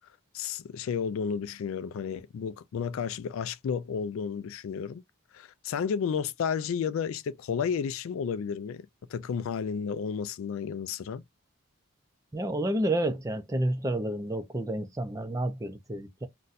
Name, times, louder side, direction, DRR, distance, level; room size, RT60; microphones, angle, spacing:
voice 1, 0.3-5.0 5.3-11.2, left 6 dB, 70° left, 0.3 m, -32 dB
voice 2, 12.3-16.3, right 1 dB, 15° right, 0.4 m, -30 dB
2.5 x 2.2 x 3.9 m
head